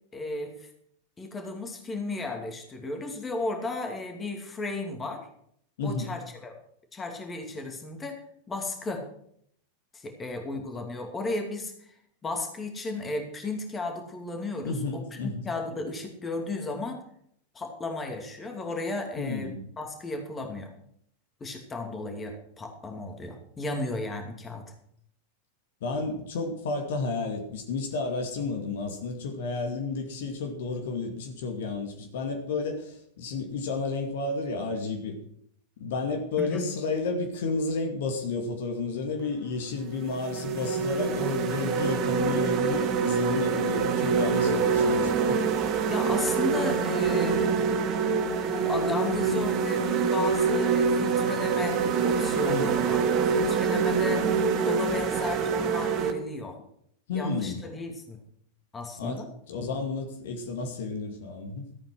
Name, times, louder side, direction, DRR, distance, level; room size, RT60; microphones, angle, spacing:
voice 1, 0.1-0.7 1.2-5.3 5.8-6.6 6.9-8.2 8.5-9.0 9.9-11.7 12.2-17.0 17.5-20.7 21.4-24.6 36.4-36.7 45.9-47.5 48.4-54.3 54.6-56.6 57.1-58.2 58.7-59.3, left 2 dB, 15° left, 4 dB, 2.5 m, -34 dB
voice 2, 5.8-6.1 14.6-15.5 19.2-19.6 25.8-35.2 35.8-45.4 52.5-52.7 57.1-57.6 59.0-61.6, left 3 dB, 55° left, 3 dB, 2.2 m, -32 dB
sound 1, 39.2-39.4 39.9-56.1, right 5 dB, 35° right, 1.8 m, -25 dB
14.5 x 8.7 x 6.3 m, 0.68 s
figure-of-eight pair, 90°, 0 cm